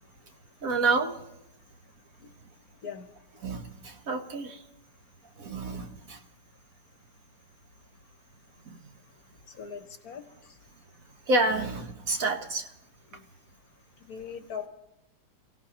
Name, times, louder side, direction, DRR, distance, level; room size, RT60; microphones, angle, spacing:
voice 1, 0.6-1.2 3.4-4.6 5.4-6.2 8.7-8.8 11.3-12.7, right 3 dB, 50° right, 5 dB, 1.4 m, -29 dB
voice 2, 9.5-10.6 13.1-13.2 14.1-14.7, left 7 dB, 55° left, 8 dB, 1.3 m, -40 dB
29.0 x 16.5 x 3.0 m, 0.88 s
omnidirectional pair, 2.0 m